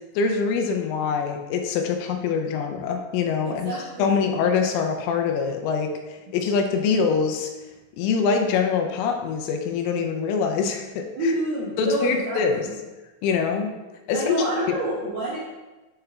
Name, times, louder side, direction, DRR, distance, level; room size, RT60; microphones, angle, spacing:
voice 1, 0.2-7.5 8.0-11.3 11.8-12.7 13.2-13.7 14.1-14.4 14.7-14.8, left 5 dB, 85° left, 4 dB, 3.1 m, -24 dB
voice 2, 3.4-4.3 11.1-12.4 14.1-15.4, right 1 dB, 70° right, -8 dB, 2.3 m, -27 dB
7.9 x 5.6 x 2.3 m, 1.1 s
omnidirectional pair, 5.7 m